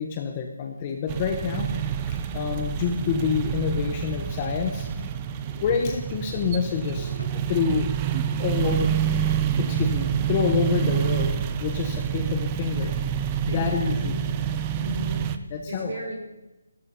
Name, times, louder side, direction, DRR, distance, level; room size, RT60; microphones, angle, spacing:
voice 1, 0.0-4.9 5.5-7.9 8.4-8.9 9.6-12.9 13.5-14.2 15.5-15.9, left 6 dB, 20° left, 4 dB, 0.9 m, -27 dB
sound 1, 1.1-15.4, right 9 dB, 15° right, 0.6 m, -27 dB
sound 2, 1.7-2.0 2.4-2.5 3.2-3.5 5.0-5.3 6.0-6.2 7.2-7.5 8.3-8.5 9.5-9.9, left 2 dB, 85° left, 1.6 m, -45 dB
voice 2, 13.5-14.3 14.8-15.4 15.7-16.1, equal, 40° right, -2 dB, 6.1 m, -34 dB
15.5 x 12.5 x 5.5 m, 1.0 s
hypercardioid pair, 175°, 0 cm